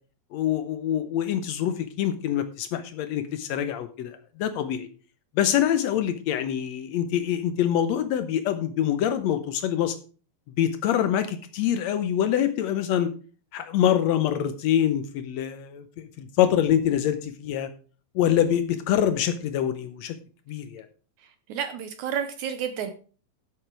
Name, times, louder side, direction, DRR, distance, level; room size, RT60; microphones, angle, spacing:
voice 1, 0.3-4.9 5.3-10.0 10.6-13.1 13.5-17.7 18.1-20.2 20.5-20.9, left 10 dB, 85° left, 10 dB, 1.5 m, -25 dB
voice 2, 21.5-22.9, right 8 dB, 70° right, 9 dB, 1.9 m, -30 dB
11.0 x 8.1 x 4.6 m, 0.38 s
omnidirectional pair, 4.1 m